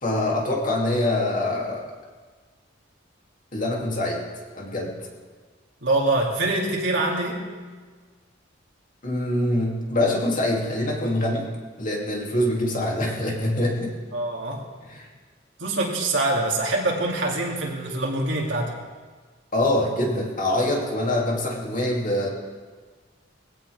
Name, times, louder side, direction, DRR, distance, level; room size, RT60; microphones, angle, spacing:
voice 1, 0.0-1.8 3.5-4.3 4.5-4.9 9.0-11.5 11.8-13.9 14.8-15.1 19.5-22.3, left 1 dB, 45° left, -1 dB, 2.7 m, -24 dB
voice 2, 5.8-7.5 14.1-14.6 15.6-18.7, right 2 dB, 70° right, -1 dB, 2.7 m, -24 dB
20.5 x 16.0 x 3.6 m, 1.5 s
head